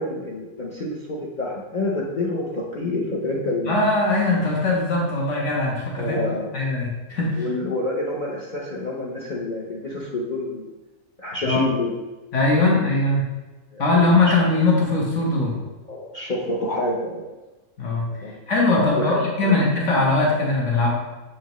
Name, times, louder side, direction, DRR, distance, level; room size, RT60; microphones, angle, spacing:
voice 1, 0.0-3.8 6.0-6.5 7.4-10.7 11.2-11.9 13.7-14.3 15.9-17.2 18.2-18.3 18.9-19.1 19.4-19.6, left 2 dB, 40° left, -4 dB, 0.8 m, -28 dB
voice 2, 3.7-6.2 6.5-7.5 11.4-11.6 12.3-13.3 13.8-15.6 17.8-18.1 18.5-20.9, left 2 dB, 55° left, -3 dB, 1.7 m, -20 dB
6.9 x 4.7 x 3.0 m, 1.1 s
omnidirectional pair, 1.5 m